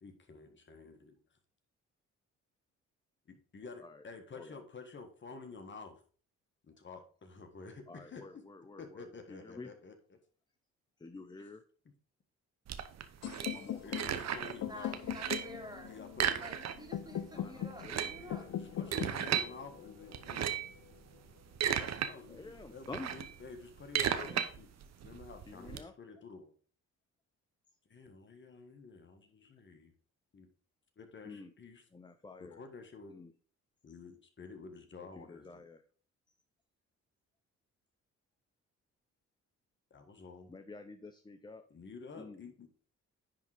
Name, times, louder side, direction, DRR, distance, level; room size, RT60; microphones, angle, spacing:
voice 1, 0.0-1.1 3.3-6.0 6.8-8.4 8.8-10.2 11.4-11.5 13.8-15.0 15.8-16.4 18.2-20.6 21.6-24.7 25.0-26.5 27.8-29.9 30.3-30.5 31.0-31.8 32.4-33.2 33.8-35.6 39.9-40.5 41.7-42.8, left 4 dB, 40° left, 5 dB, 1.5 m, -50 dB
voice 2, 7.9-9.7 11.0-11.6 13.4-14.2 17.4-18.1 22.3-23.1 24.0-24.5 25.5-25.9 31.2-31.5 31.9-32.6 33.1-33.3 35.0-35.8 40.5-41.6 42.1-42.4, left 3 dB, 15° left, 8 dB, 0.6 m, -49 dB
sound 1, 12.7-14.6 14.9-15.6 16.1-17.0 17.3-17.4 17.7-19.5 20.1-20.8 21.3-22.1 22.5-25.8, right 9 dB, 60° right, 0.9 m, -35 dB
sound 2, 13.2-21.2, left 11 dB, 60° left, 0.6 m, -42 dB
voice 3, 14.6-16.0 16.4-19.4, right 1 dB, 15° right, 2 dB, 2.4 m, -51 dB
10.5 x 3.7 x 4.9 m, 0.42 s
cardioid pair, 90°, 30 cm